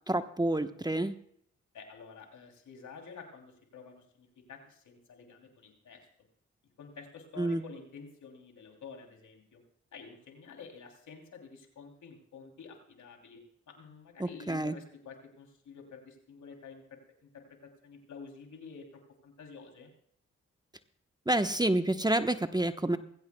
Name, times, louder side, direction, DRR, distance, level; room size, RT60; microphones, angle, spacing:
voice 1, 0.1-1.1 7.4-7.6 14.2-14.8 21.3-23.0, right 1 dB, 15° right, 9 dB, 1.0 m, -28 dB
voice 2, 1.7-6.1 6.8-9.6 9.9-13.4 13.7-19.9, left 5 dB, 75° left, 3 dB, 3.1 m, -50 dB
20.0 x 16.0 x 2.3 m, 0.67 s
supercardioid pair, 45°, 30 cm